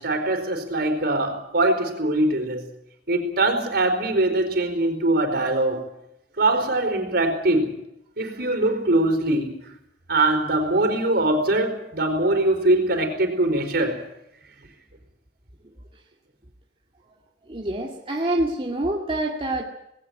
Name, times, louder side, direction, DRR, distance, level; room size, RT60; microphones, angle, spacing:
voice 1, 0.0-2.6 3.1-5.8 6.4-7.8 8.2-9.6 10.1-14.0, right 2 dB, 60° right, 6 dB, 4.6 m, -22 dB
voice 2, 17.5-19.6, right 1 dB, 30° right, -1 dB, 2.1 m, -26 dB
20.0 x 17.5 x 8.8 m, 0.81 s
head